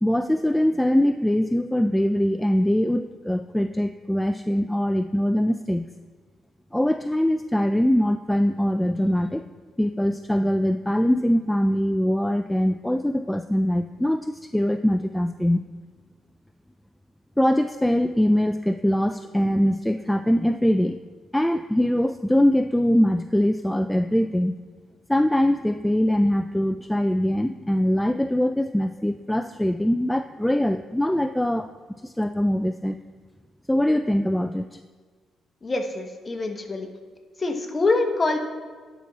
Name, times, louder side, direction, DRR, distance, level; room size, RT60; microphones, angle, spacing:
voice 1, 0.0-5.9 6.7-9.4 9.8-15.6 17.4-21.0 21.3-24.5 25.1-31.7 32.0-33.0 33.7-34.8, equal, 5° left, 8 dB, 0.3 m, -22 dB
voice 2, 35.6-36.9 37.4-38.4, left 3 dB, 30° left, 5 dB, 1.1 m, -25 dB
10.0 x 6.0 x 4.1 m, 1.5 s
cardioid pair, 90°, 0 cm